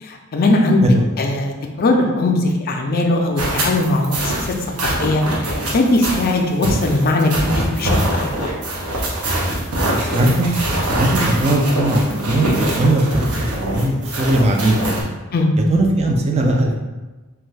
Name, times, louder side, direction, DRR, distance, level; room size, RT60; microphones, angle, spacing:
voice 1, 0.0-0.8 1.2-4.5 4.8-8.5 15.3-15.5, left 2 dB, 45° left, 2 dB, 0.4 m, -19 dB
sound 1, 3.4-15.0, right 1 dB, 80° right, 0.7 m, -23 dB
voice 2, 9.9-10.5 10.9-15.0 15.7-16.7, right 1 dB, 30° right, 2 dB, 0.3 m, -18 dB
2.6 x 2.3 x 3.2 m, 1.2 s
head